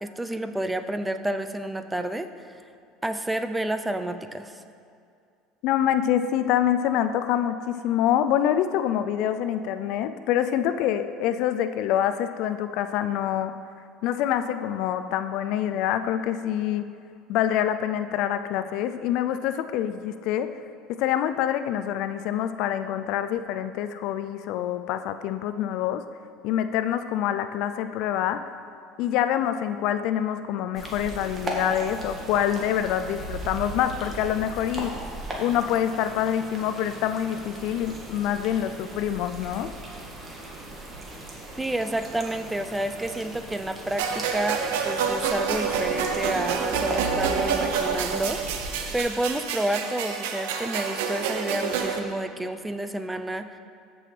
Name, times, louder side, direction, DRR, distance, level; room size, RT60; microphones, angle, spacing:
voice 1, 0.0-2.6 3.0-4.6 41.6-53.6, right 1 dB, 10° right, 9 dB, 0.5 m, -30 dB
voice 2, 5.6-13.5 14.0-16.9 17.3-20.5 20.9-26.0 26.4-28.4 29.0-34.9 35.4-39.7, left 10 dB, 65° left, 10 dB, 0.4 m, -26 dB
sound 1, 30.7-49.0, right 1 dB, 30° right, 1.9 m, -38 dB
sound 2, 44.0-52.0, right 6 dB, 80° right, 0.7 m, -28 dB
13.5 x 6.1 x 3.3 m, 2.4 s
supercardioid pair, 90°, 0 cm